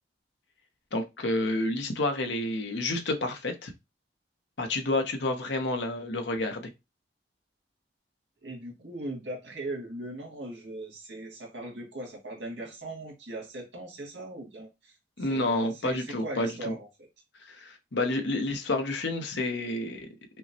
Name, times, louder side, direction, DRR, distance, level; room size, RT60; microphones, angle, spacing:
voice 1, 0.9-3.7 4.6-6.7 15.2-16.7 17.4-20.1, left 2 dB, 80° left, 0.9 m, -29 dB
voice 2, 8.4-14.9 15.2-17.1, right 2 dB, 85° right, 1.8 m, -39 dB
5.4 x 2.1 x 2.8 m
head